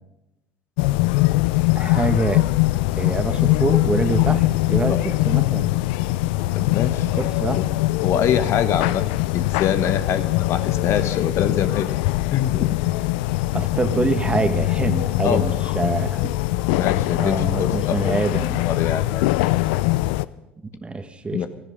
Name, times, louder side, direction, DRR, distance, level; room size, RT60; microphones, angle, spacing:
sound 1, 0.8-20.2, left 18 dB, 65° left, 0.5 m, -22 dB
voice 1, 1.7-2.4 2.9-5.7 7.2-7.6 13.5-16.3 17.2-18.7 20.8-21.4, right 3 dB, 20° right, 9 dB, 1.7 m, -25 dB
voice 2, 6.5-7.1 7.6-7.7 8.0-9.0 9.3-11.9 12.3-12.8 15.2-15.6 16.7-18.2 18.5-19.3 21.3-21.5, left 9 dB, 50° left, 11 dB, 1.1 m, -24 dB
16.5 x 14.0 x 5.3 m, 0.95 s
figure-of-eight pair, 65°, 6 cm